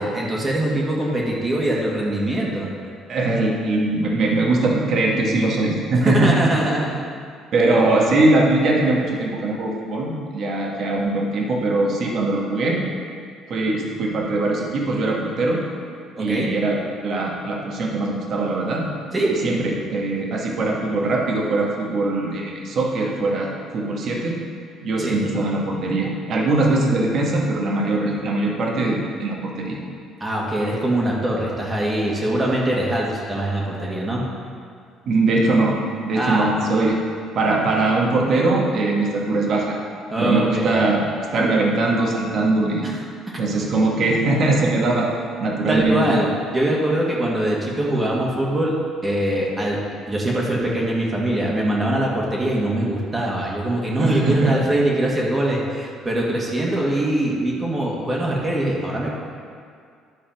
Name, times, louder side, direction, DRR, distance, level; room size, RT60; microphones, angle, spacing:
voice 1, 0.0-2.7 6.0-7.0 16.2-16.5 19.1-19.4 25.0-25.2 30.2-34.2 36.2-36.5 40.1-40.7 42.8-43.0 45.7-48.8 49.0-59.1, right 1 dB, 25° right, -3 dB, 1.9 m, -22 dB
voice 2, 3.1-6.4 7.5-12.8 13.5-15.6 16.2-18.8 19.4-24.4 24.8-29.8 35.0-37.0 37.3-39.8 40.2-41.0 41.3-42.9 43.4-45.1 45.4-46.1 54.0-54.5, right 2 dB, 55° right, -1 dB, 1.5 m, -21 dB
10.5 x 4.2 x 5.9 m, 2.2 s
supercardioid pair, 90°, 0 cm